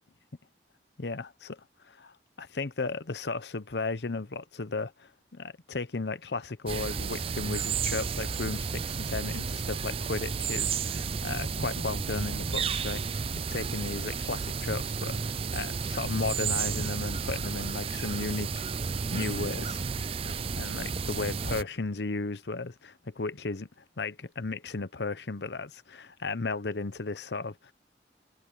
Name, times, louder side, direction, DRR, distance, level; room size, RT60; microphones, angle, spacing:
voice 1, 1.0-18.7 19.1-19.8 20.2-23.7 24.0-27.7, left 3 dB, 75° left, 0.9 m, -35 dB
sound 1, 6.7-21.6, right 5 dB, 30° right, 0.4 m, -32 dB
head